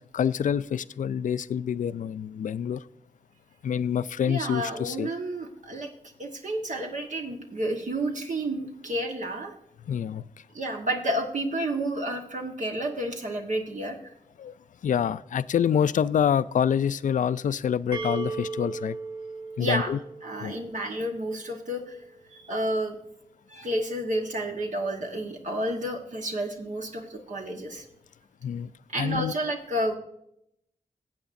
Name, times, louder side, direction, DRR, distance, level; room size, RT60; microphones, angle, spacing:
voice 1, 0.1-2.8 3.6-5.1 9.9-10.2 14.4-14.5 14.8-19.0 19.6-20.0 20.4-20.5 28.4-28.7 29.0-29.3, left 8 dB, 65° left, 16 dB, 0.4 m, -26 dB
voice 2, 4.2-5.9 6.2-9.5 10.5-14.1 19.6-19.9 20.2-22.0 22.3-23.0 23.5-27.8 28.9-29.9, right 1 dB, 65° right, 2 dB, 1.4 m, -30 dB
sound 1, 17.9-21.6, right 4 dB, 35° right, 4.4 m, -37 dB
16.0 x 7.9 x 2.6 m, 0.76 s
cardioid pair, 50°, 14 cm